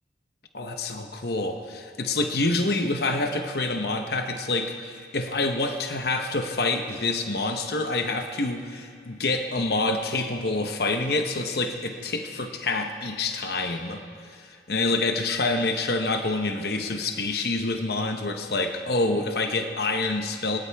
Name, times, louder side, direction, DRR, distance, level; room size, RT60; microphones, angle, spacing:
voice 1, 0.5-14.0 14.3-20.6, left 2 dB, 55° left, 5 dB, 0.9 m, -27 dB
21.0 x 18.5 x 3.5 m, 2.4 s
head